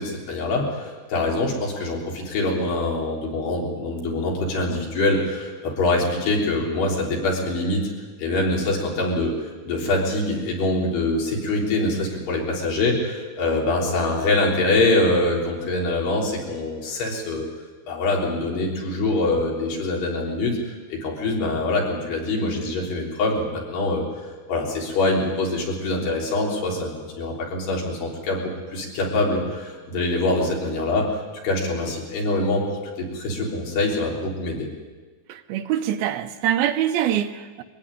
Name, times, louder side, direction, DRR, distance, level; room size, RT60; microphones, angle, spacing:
voice 1, 0.0-7.9 8.2-9.3 9.6-17.5 17.9-20.6 20.9-24.0 24.5-28.4 28.7-34.7, left 2 dB, 80° left, -2 dB, 5.8 m, -24 dB
voice 2, 35.3-37.6, right 11 dB, 75° right, 8 dB, 2.6 m, -24 dB
22.5 x 15.5 x 10.0 m, 1.4 s
omnidirectional pair, 4.6 m